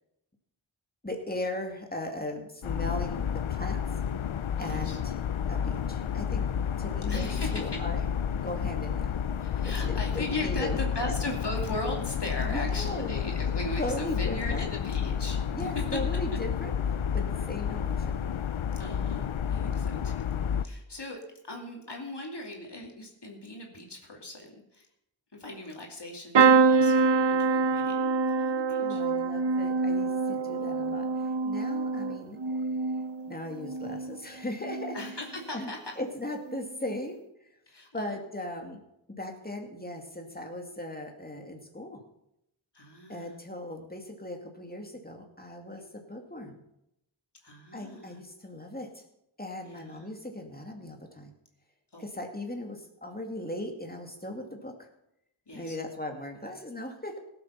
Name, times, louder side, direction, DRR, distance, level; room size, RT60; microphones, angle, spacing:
voice 1, 1.0-3.8 4.6-5.1 5.5-6.5 6.8-8.0 8.3-9.1 9.6-11.1 12.4-13.2 13.8-14.7 15.5-16.7 17.1-18.2 19.8-20.0 28.8-31.1 31.4-32.4 33.3-35.0 35.5-35.7 36.0-37.2 37.9-38.8 39.2-42.0 43.1-46.6 47.7-48.9 49.4-51.3 52.0-54.9 55.5-57.2, left 1 dB, 20° left, 3 dB, 2.3 m, -38 dB
sound 1, 2.6-20.7, left 8 dB, 80° left, 0.7 m, -30 dB
voice 2, 4.6-5.0 7.1-7.8 9.4-16.0 18.7-21.2 21.4-24.9 25.3-29.0 30.5-30.8 34.9-36.0 37.7-38.2 42.7-43.4 45.8-45.9 47.4-48.2 49.7-50.1 51.9-52.0 55.5-55.8, left 1 dB, 55° left, 0 dB, 2.6 m, -38 dB
sound 2, 26.3-34.2 34.6-35.2 36.4-36.6 36.9-37.0, right 4 dB, 60° right, 0.8 m, -25 dB
17.5 x 7.6 x 5.8 m, 0.81 s
wide cardioid pair, 60°, 47 cm